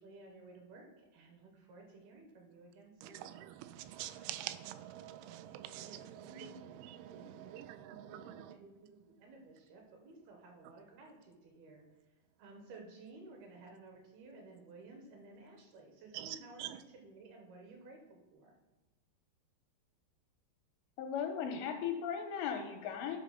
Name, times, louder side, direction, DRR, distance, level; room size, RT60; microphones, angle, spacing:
voice 1, 0.0-3.3 5.5-18.5, right 3 dB, 70° right, 2.7 m, -55 dB
voice 2, 3.0-8.6 16.1-16.8, right 13 dB, 85° right, 2.9 m, -46 dB
voice 3, 21.0-23.2, left 7 dB, 85° left, 2.7 m, -37 dB
12.0 x 4.1 x 5.6 m
omnidirectional pair, 5.4 m